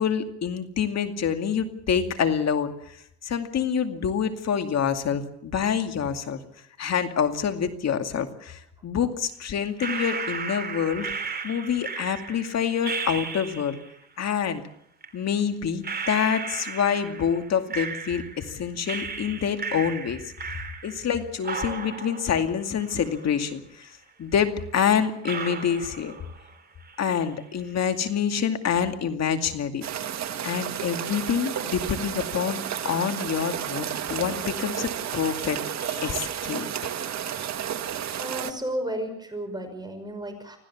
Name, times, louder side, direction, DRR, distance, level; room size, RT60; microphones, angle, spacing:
voice 1, 0.0-3.0 3.2-6.4 6.8-11.1 11.4-13.8 14.2-14.6 15.1-20.2 20.8-26.1 27.0-29.8 30.4-32.6 32.8-36.7, left 7 dB, 60° left, 7 dB, 2.4 m, -27 dB
sound 1, 9.8-13.9 15.0-15.1 15.8-18.5 18.9-21.1 21.4-23.5 23.8-23.9 24.6-24.7 25.2-26.6 26.8-27.4, right 5 dB, 30° right, 3.4 m, -35 dB
sound 2, 29.8-38.5, right 9 dB, 60° right, 1.7 m, -32 dB
voice 2, 38.2-40.6, right 1 dB, 15° right, 5 dB, 5.7 m, -33 dB
25.5 x 16.0 x 7.2 m, 0.74 s
cardioid pair, 90°, 30 cm